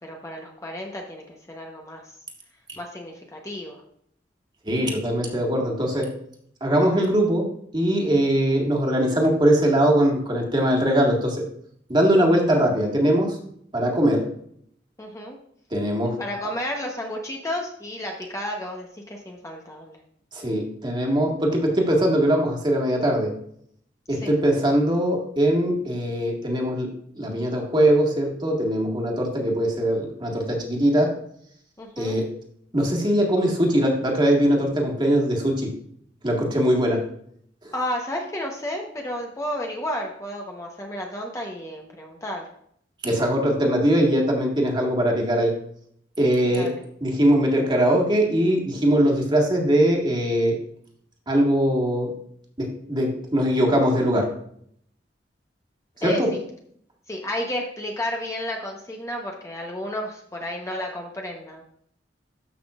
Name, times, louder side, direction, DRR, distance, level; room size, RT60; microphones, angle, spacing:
voice 1, 0.0-2.0 2.8-3.8 15.0-15.4 16.2-20.0 24.1-24.3 31.8-32.1 37.7-42.4 46.5-46.8 56.0-56.2 57.1-61.6, left 1 dB, 15° left, 0 dB, 1.0 m, -32 dB
voice 2, 4.6-6.1 6.6-7.5 7.7-11.4 11.9-13.4 13.7-14.3 15.7-16.2 20.3-23.3 24.1-26.9 27.1-31.1 32.0-32.3 32.7-35.7 36.2-37.1 37.6-37.7 43.0-45.5 46.2-46.7 47.0-50.6 51.3-52.1 52.6-54.3 56.0-56.3, right 1 dB, 25° right, -1 dB, 1.9 m, -21 dB
13.0 x 5.9 x 2.4 m, 0.66 s
head